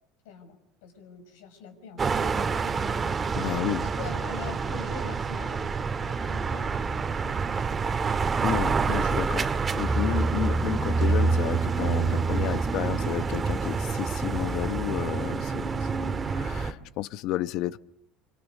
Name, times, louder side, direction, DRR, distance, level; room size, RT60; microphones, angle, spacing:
voice 1, 0.2-3.1 3.8-8.2 15.9-16.3, left 6 dB, 90° left, 7 dB, 5.8 m, -45 dB
sound 1, 2.0-16.7, right 4 dB, 30° right, 1.8 m, -27 dB
voice 2, 3.3-3.9 8.4-9.5 9.7-15.9 16.4-17.8, left 14 dB, 65° left, 15 dB, 1.0 m, -31 dB
26.0 x 25.5 x 6.7 m, 0.73 s
supercardioid pair, 100°, 0 cm